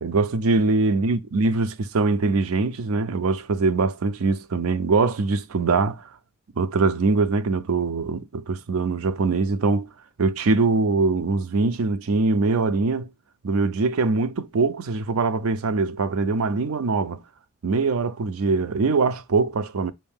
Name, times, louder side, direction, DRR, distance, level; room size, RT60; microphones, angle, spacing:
voice 1, 0.0-6.1 6.6-9.9 10.2-13.1 13.4-17.2 17.6-19.9, right 4 dB, 80° right, 0.5 m, -22 dB
5.4 x 2.6 x 3.5 m
head